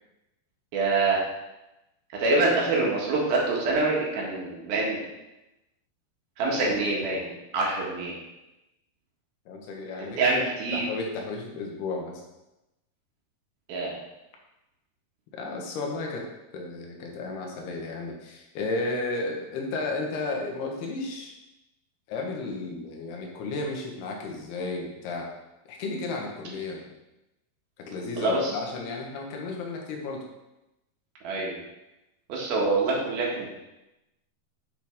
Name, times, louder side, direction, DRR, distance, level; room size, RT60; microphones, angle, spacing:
voice 1, 0.7-1.2 2.2-5.0 6.4-7.3 7.5-8.1 10.2-10.9 13.7-13.9 28.2-28.5 31.2-31.5 32.3-33.5, right 3 dB, 70° right, -3 dB, 3.4 m, -25 dB
voice 2, 9.5-10.3 10.7-12.2 15.3-16.2 16.5-21.3 22.1-25.3 25.7-26.9 27.8-30.3, left 3 dB, 75° left, 0 dB, 3.4 m, -33 dB
9.1 x 7.0 x 3.6 m, 0.96 s
omnidirectional pair, 4.7 m